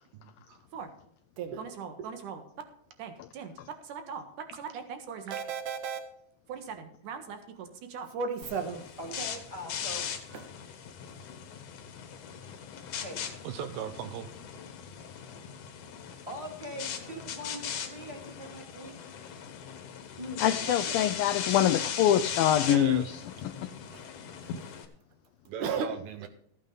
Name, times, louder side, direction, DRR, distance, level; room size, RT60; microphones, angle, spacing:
voice 1, 0.1-0.6 13.4-14.3 22.7-23.1 25.5-26.3, right 9 dB, 80° right, 10 dB, 2.1 m, -38 dB
voice 2, 1.4-2.4 3.0-3.5 3.9-4.2 4.5-6.0 6.5-8.9 10.3-10.4 23.9-24.0 25.6-25.9, right 6 dB, 60° right, 7 dB, 2.7 m, -36 dB
sound 1, 8.4-24.8, left 8 dB, 60° left, 2.5 m, -39 dB
voice 3, 9.0-10.1 13.0-13.2 16.3-18.9 20.2-21.1, equal, 10° right, -1 dB, 2.4 m, -41 dB
voice 4, 20.4-23.2, left 11 dB, 85° left, 9 dB, 2.1 m, -24 dB
15.0 x 9.1 x 4.0 m, 0.71 s
omnidirectional pair, 4.8 m